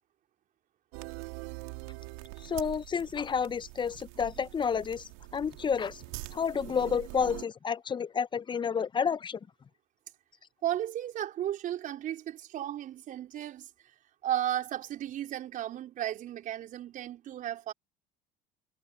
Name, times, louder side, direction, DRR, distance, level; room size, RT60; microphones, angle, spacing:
sound 1, 0.9-7.4, right 28 dB, 75° right, 3.2 m, -44 dB
voice 1, 2.4-6.0 6.3-9.4, left 6 dB, 30° left, 0.8 m, -30 dB
voice 2, 10.6-13.7 14.2-17.7, right 12 dB, 55° right, 4.5 m, -34 dB
hypercardioid pair, 75°, 17 cm